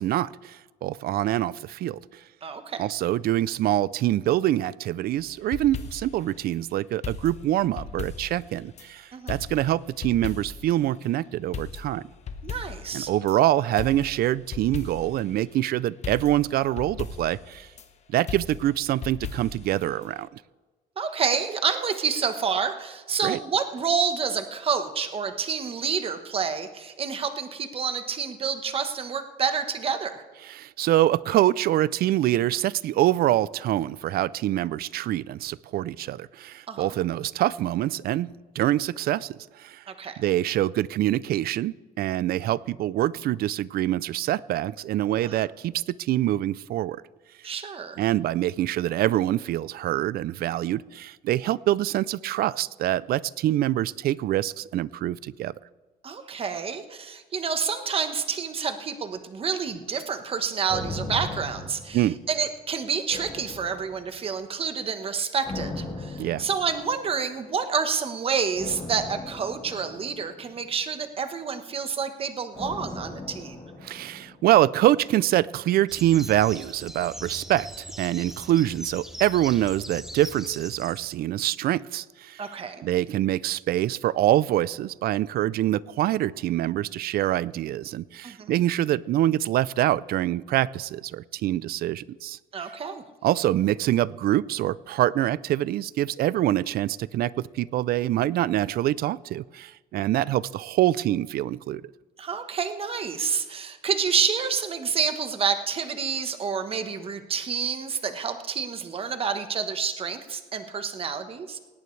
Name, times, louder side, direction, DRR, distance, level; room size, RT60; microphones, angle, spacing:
voice 1, 0.0-2.2 2.8-12.1 12.9-17.7 18.1-20.4 23.2-23.4 30.4-39.8 40.2-47.0 48.0-55.5 61.9-62.2 66.2-66.4 73.8-82.5 82.8-92.4 93.2-101.8, right 13 dB, 70° right, 20 dB, 0.4 m, -25 dB
voice 2, 2.4-2.8 9.1-9.4 12.4-13.1 21.0-30.2 36.7-36.9 39.9-40.1 45.2-45.3 47.4-48.0 56.0-62.0 62.3-73.6 82.4-82.9 88.2-88.5 92.5-93.0 102.2-111.6, right 6 dB, 35° right, 8 dB, 1.1 m, -28 dB
sound 1, 5.2-6.2 7.0-8.9 9.3-10.7 11.0-11.1 11.5-13.4 13.8-15.2 15.5-15.6 16.0-17.9 18.3-19.7 20.0-20.1, left 5 dB, 40° left, 1.2 m, -37 dB
sound 2, 60.7-62.6 63.1-64.4 65.4-67.1 68.5-70.9 72.5-74.7 75.0-75.1, left 2 dB, 25° left, 4.0 m, -38 dB
sound 3, 75.9-81.2, equal, ahead, 0.8 m, -41 dB
17.5 x 17.5 x 3.3 m, 1.2 s
cardioid pair, 155°, 17 cm